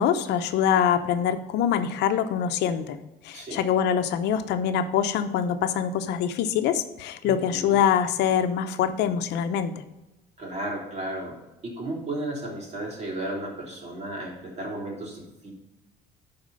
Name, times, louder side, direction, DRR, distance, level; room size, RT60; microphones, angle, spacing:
voice 1, 0.0-3.0 3.2-9.7, left 8 dB, 80° left, 9 dB, 0.8 m, -24 dB
voice 2, 7.2-7.8 10.4-11.4 11.6-15.5, right 1 dB, 40° right, -2 dB, 3.4 m, -34 dB
11.5 x 4.4 x 5.5 m, 0.99 s
cardioid pair, 110°, 17 cm